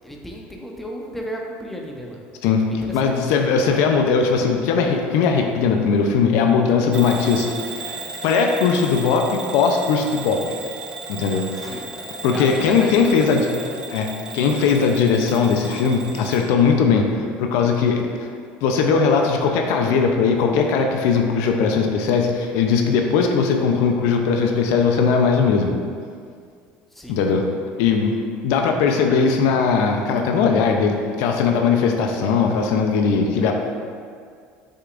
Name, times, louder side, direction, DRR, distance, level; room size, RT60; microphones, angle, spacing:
voice 1, 0.0-2.2 2.7-3.1 11.6-11.9 12.3-13.6 26.9-27.2, equal, 5° left, -1 dB, 0.9 m, -34 dB
voice 2, 2.9-8.0 8.2-10.6 11.1-11.8 12.2-13.5 13.9-14.1 14.3-18.3 18.6-25.7 27.1-27.4 27.8-28.1 28.4-33.5, left 5 dB, 75° left, 3 dB, 0.6 m, -19 dB
Bell / Alarm, 6.9-16.5, right 3 dB, 20° right, 0.5 m, -35 dB
6.5 x 5.8 x 2.5 m, 2.1 s
supercardioid pair, 100°, 5 cm